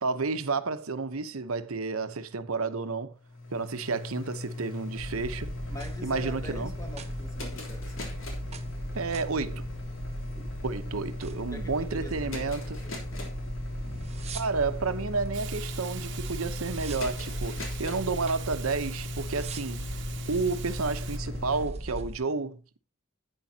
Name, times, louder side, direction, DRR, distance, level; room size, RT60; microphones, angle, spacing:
voice 1, 0.0-3.1 3.5-5.5 6.0-6.7 8.9-9.6 10.6-12.8 14.3-19.9 20.3-22.8, right 4 dB, 90° right, 0.9 m, -31 dB
sound 1, 3.1-21.6, left 2 dB, 70° left, 3.2 m, -38 dB
sound 2, 5.0-22.2, right 1 dB, 30° right, 1.0 m, -38 dB
voice 2, 5.7-8.1 11.5-13.4, left 1 dB, 15° left, 1.7 m, -44 dB
Hiss, 15.3-21.2, right 10 dB, 60° right, 1.0 m, -44 dB
11.5 x 8.8 x 2.8 m
head